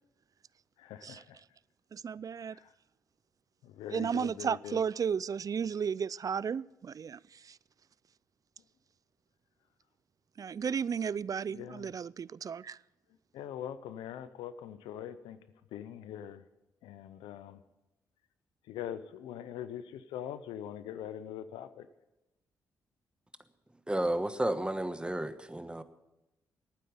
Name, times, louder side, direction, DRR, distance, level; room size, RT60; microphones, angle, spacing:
voice 1, 0.8-1.4 2.4-2.7 3.6-4.8 11.5-11.9 13.3-15.4 15.7-16.4 16.8-17.6 18.7-21.9, left 10 dB, 85° left, 0.6 m, -42 dB
voice 2, 1.9-2.6 3.9-7.6 10.4-12.8, right 7 dB, 45° right, 0.4 m, -34 dB
voice 3, 23.9-25.8, right 1 dB, 10° right, 1.1 m, -32 dB
12.0 x 9.4 x 8.6 m
supercardioid pair, 50°, 8 cm